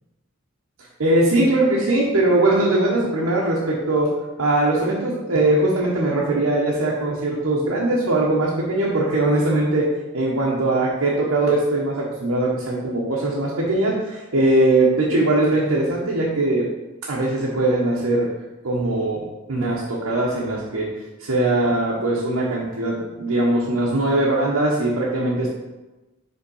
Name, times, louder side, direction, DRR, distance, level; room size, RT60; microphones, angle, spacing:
voice 1, 1.0-4.1 4.4-9.9 10.1-16.7 17.0-18.3 18.6-19.2 19.5-20.9 21.2-25.5, right 2 dB, 90° right, -4 dB, 1.0 m, -20 dB
5.5 x 3.7 x 5.5 m, 1.1 s
head